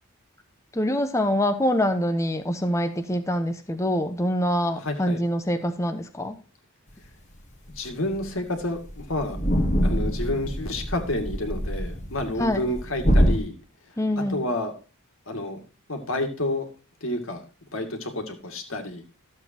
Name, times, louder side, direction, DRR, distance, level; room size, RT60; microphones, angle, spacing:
voice 1, 0.7-6.4 12.4-12.6 14.0-14.4, equal, 15° left, 7 dB, 0.9 m, -25 dB
voice 2, 4.8-5.2 7.7-9.4 9.8-13.6 13.9-14.0 14.3-14.7 15.3-15.6 15.9-16.7 17.0-17.4 17.7-19.0, left 1 dB, 60° left, 5 dB, 2.2 m, -29 dB
sound 1, 7.7-7.8 8.1-8.3 8.6-8.7 8.9-13.4, equal, 30° left, 1.6 m, -25 dB
13.5 x 7.7 x 2.9 m, 0.34 s
head